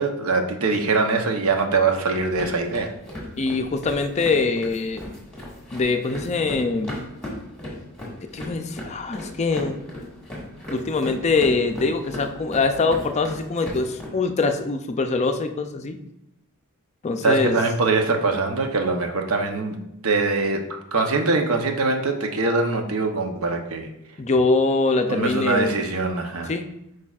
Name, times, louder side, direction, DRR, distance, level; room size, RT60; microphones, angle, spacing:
voice 1, 0.0-2.9 17.2-23.9 25.1-26.5, right 3 dB, 75° right, 4 dB, 0.8 m, -23 dB
sound 1, 2.1-14.1, left 1 dB, 5° left, 1.6 m, -37 dB
voice 2, 3.4-5.0 5.7-7.0 8.3-9.8 10.7-16.0 17.0-17.5 24.2-25.8 26.5-26.7, left 3 dB, 30° left, 7 dB, 0.4 m, -23 dB
8.5 x 4.8 x 2.4 m, 0.85 s
head